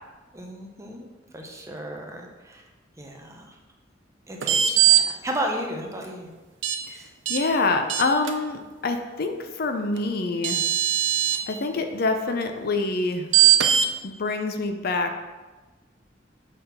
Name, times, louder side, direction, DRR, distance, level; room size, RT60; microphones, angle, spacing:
voice 1, 0.3-2.6 3.0-3.6 4.3-6.3 6.9-7.1, right 1 dB, 15° right, 2 dB, 0.8 m, -34 dB
sound 1, 4.4-5.0 6.6-6.8 7.3-7.4 7.9-8.3 10.0-10.1 10.4-11.4 13.3-13.9, right 11 dB, 85° right, 0.6 m, -19 dB
voice 2, 7.3-10.6 11.5-13.3 14.0-15.2, left 3 dB, 55° left, 6 dB, 0.6 m, -26 dB
6.6 x 3.6 x 5.7 m, 1.2 s
head